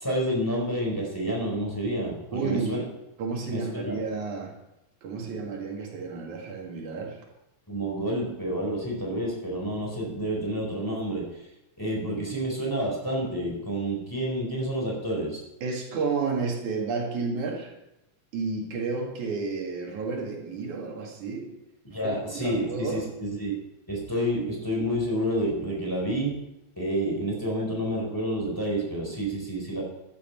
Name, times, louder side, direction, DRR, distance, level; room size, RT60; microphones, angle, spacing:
voice 1, 0.0-2.8 3.5-4.0 7.7-11.3 11.8-15.4 21.9-23.5 23.9-26.4 26.8-29.8, right 1 dB, 5° left, 4.3 m, -29 dB
voice 2, 2.3-2.9 3.2-4.6 5.0-7.2 15.6-17.8 18.3-21.6 22.0-23.1, right 4 dB, 85° right, 3.7 m, -31 dB
14.5 x 11.5 x 4.6 m
omnidirectional pair, 3.3 m